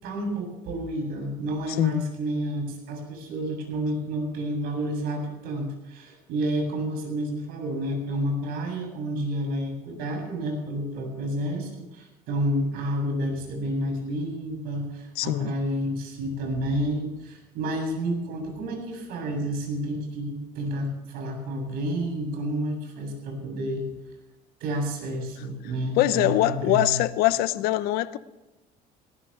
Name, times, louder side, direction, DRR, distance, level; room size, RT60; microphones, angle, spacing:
voice 1, 0.0-23.9 24.6-27.0, right 1 dB, 75° right, 7.6 m, -30 dB
voice 2, 15.2-15.5 26.0-28.2, left 15 dB, 75° left, 0.9 m, -23 dB
19.0 x 18.5 x 3.4 m
cardioid pair, 125°, 16 cm